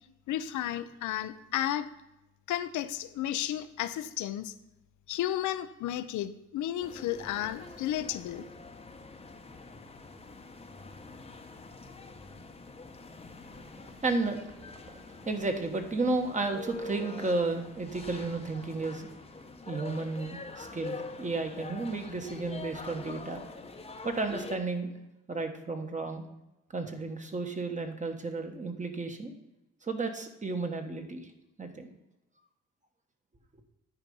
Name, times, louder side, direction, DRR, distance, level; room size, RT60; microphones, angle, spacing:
voice 1, 0.3-1.9 2.5-4.5 5.1-8.5, left 12 dB, 75° left, 12 dB, 0.6 m, -33 dB
sound 1, 6.8-24.6, left 3 dB, 20° left, 0.8 m, -45 dB
voice 2, 13.4-19.3 19.6-23.4 24.0-24.9 25.3-26.2 26.7-29.3 29.8-31.3 31.6-31.9, right 3 dB, 25° right, 5 dB, 1.3 m, -33 dB
10.0 x 4.5 x 5.3 m, 0.93 s
cardioid pair, 90°, 30 cm